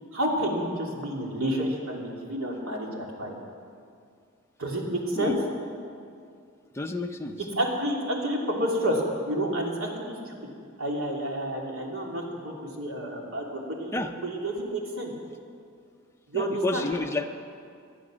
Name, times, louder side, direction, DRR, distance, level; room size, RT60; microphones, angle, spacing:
voice 1, 0.1-3.3 4.6-5.3 7.6-10.4 10.8-15.1 16.3-16.9, right 1 dB, 80° right, -1 dB, 3.0 m, -30 dB
voice 2, 6.7-7.4 13.9-14.1 16.3-17.3, left 2 dB, 10° left, 4 dB, 0.7 m, -30 dB
19.5 x 12.0 x 6.3 m, 2.3 s
head